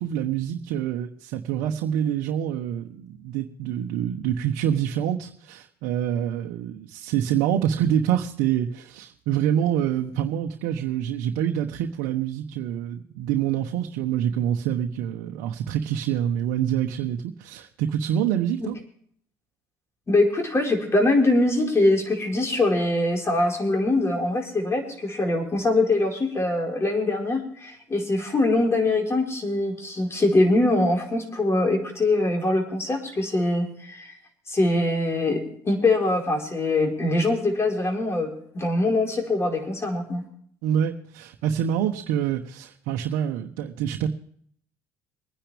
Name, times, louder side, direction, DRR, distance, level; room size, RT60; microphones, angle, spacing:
voice 1, 0.0-18.8 40.6-44.1, right 9 dB, 75° right, 3 dB, 1.1 m, -26 dB
voice 2, 20.1-34.1 34.5-40.2, left 2 dB, 30° left, 2 dB, 4.7 m, -23 dB
24.0 x 10.0 x 3.4 m, 0.62 s
hypercardioid pair, 70°, 9 cm